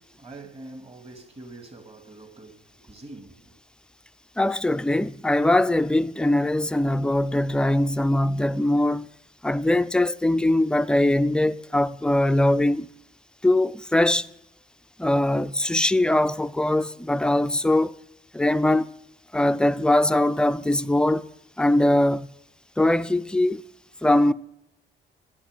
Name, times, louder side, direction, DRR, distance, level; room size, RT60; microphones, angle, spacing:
voice 1, 0.0-3.6, right 2 dB, 30° right, 2.1 m, -44 dB
voice 2, 4.4-9.1 9.4-12.9 13.4-14.3 15.0-18.0 18.3-18.9 19.3-21.3 21.6-22.3 22.8-23.6 24.0-24.3, left 1 dB, 5° left, 0.4 m, -21 dB
12.5 x 8.6 x 7.5 m
cardioid pair, 90°, 20 cm